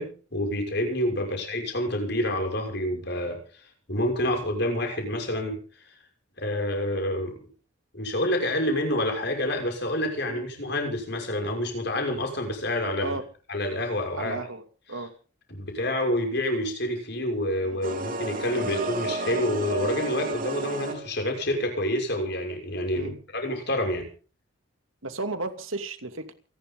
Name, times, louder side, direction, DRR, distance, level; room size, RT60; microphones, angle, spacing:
voice 1, 0.0-3.4 3.9-5.6 6.4-7.3 7.9-13.2 13.5-14.4 15.5-24.0, left 1 dB, 55° left, 3 dB, 6.2 m, -28 dB
voice 2, 14.2-14.6 14.9-15.1 17.7-17.8 22.9-23.2 25.0-26.3, right 2 dB, 90° right, 7 dB, 2.6 m, -34 dB
sound 1, 17.8-21.3, right 2 dB, 45° right, 3.5 m, -31 dB
28.5 x 11.5 x 3.9 m, 0.38 s
head